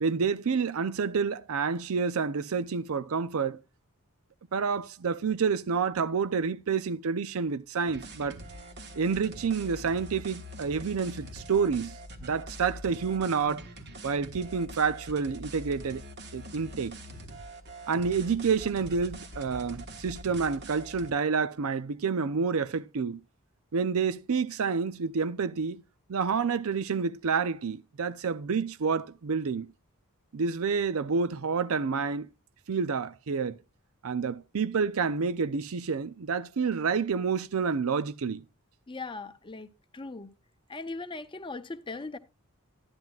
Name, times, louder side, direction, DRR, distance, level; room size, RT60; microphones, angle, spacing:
voice 1, 0.0-3.6 4.5-8.4 8.9-11.9 12.2-13.6 14.0-16.0 16.3-17.0 17.9-23.2 23.7-25.8 26.1-29.7 30.3-32.3 32.7-33.6 34.0-38.4, right 5 dB, 65° right, 0.5 m, -29 dB
sound 1, 7.9-21.1, equal, 50° right, 1.4 m, -44 dB
voice 2, 38.9-39.7 39.9-40.3 40.7-42.2, left 3 dB, 20° left, 0.7 m, -39 dB
12.5 x 10.5 x 2.4 m
head